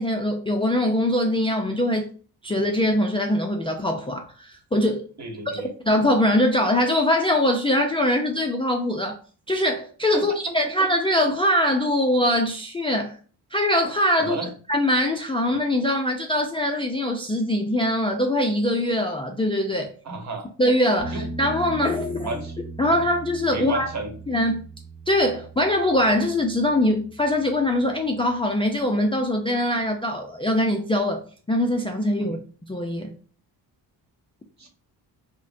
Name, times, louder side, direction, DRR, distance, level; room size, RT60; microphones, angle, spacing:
voice 1, 0.0-2.1 2.4-5.0 5.5-9.2 9.5-13.1 13.5-14.4 14.7-19.9 20.6-22.3 22.8-23.9 24.3-24.6 25.1-32.4 32.7-33.1, left 1 dB, 15° left, 0.4 m, -22 dB
voice 2, 5.2-5.7 10.1-10.4 14.2-14.5 20.0-20.5 21.1-21.3 22.2-22.6 23.5-24.1 32.2-32.4 34.6-34.7, right 2 dB, 40° right, 1.1 m, -32 dB
sound 1, 21.0-28.6 31.6-31.7, right 3 dB, 10° right, 1.2 m, -39 dB
5.0 x 2.2 x 2.5 m
cardioid pair, 85°, 42 cm